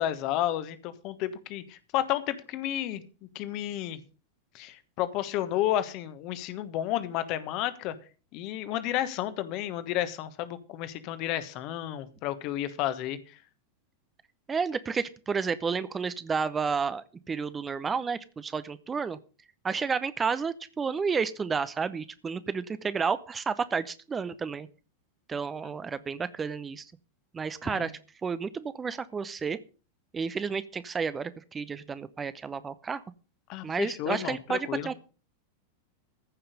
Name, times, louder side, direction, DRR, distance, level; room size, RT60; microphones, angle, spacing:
voice 1, 0.0-3.0 3.3-4.0 4.5-7.9 8.3-13.2 27.6-27.9 33.5-34.9, left 12 dB, 40° left, 13 dB, 1.3 m, -31 dB
voice 2, 14.5-19.2 19.6-24.7 25.3-26.8 27.3-27.9 28.2-29.6 30.1-33.0 33.6-34.9, right 5 dB, 15° right, 15 dB, 0.7 m, -31 dB
15.0 x 5.8 x 6.6 m, 0.36 s
figure-of-eight pair, 90°, 0 cm